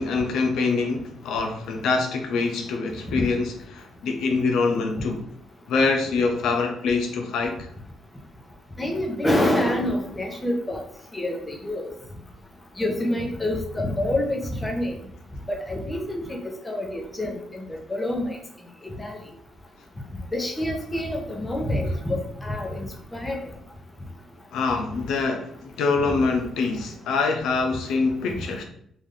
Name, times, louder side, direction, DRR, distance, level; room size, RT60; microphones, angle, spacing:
voice 1, 0.0-5.2 5.7-7.7 24.5-28.6, left 4 dB, 80° left, 0.5 m, -25 dB
voice 2, 8.8-10.8 11.1-11.9 12.8-14.9 15.5-18.4 18.8-19.2 20.3-23.4, left 1 dB, 15° left, 0.9 m, -27 dB
3.3 x 2.6 x 3.7 m
cardioid pair, 90°, 0 cm